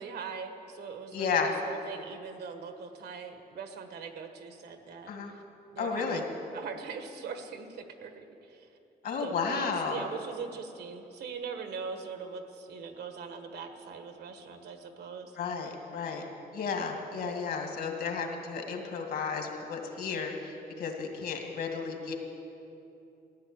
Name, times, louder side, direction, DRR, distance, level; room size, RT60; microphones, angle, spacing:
voice 1, 0.0-5.4 5.7-8.7 9.2-15.4, right 5 dB, 80° right, 6 dB, 1.5 m, -41 dB
voice 2, 1.1-1.5 5.1-5.3 5.8-6.2 9.0-10.0 15.4-16.2 16.5-22.2, left 5 dB, 70° left, 2 dB, 2.3 m, -33 dB
15.0 x 10.5 x 8.7 m, 2.9 s
wide cardioid pair, 170°, 17 cm